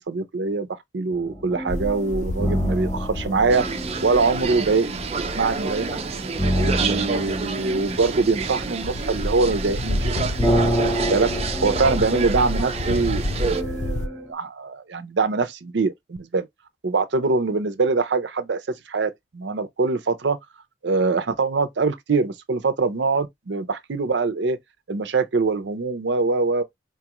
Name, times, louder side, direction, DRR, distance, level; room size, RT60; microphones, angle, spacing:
voice 1, 0.1-0.7 0.9-3.7 4.0-5.1 5.4-6.0 6.6-10.1 10.5-10.8 11.1-11.3 11.6-16.5 16.8-18.6 18.9-20.4 20.8-24.6 24.9-26.6, right 4 dB, 75° right, 0.6 m, -23 dB
sound 1, 1.1-14.3, equal, 5° right, 0.8 m, -29 dB
sound 2, 1.7-14.1, left 1 dB, 40° left, 0.5 m, -31 dB
sound 3, 3.5-13.6, right 4 dB, 35° right, 0.4 m, -29 dB
4.5 x 2.3 x 2.9 m
head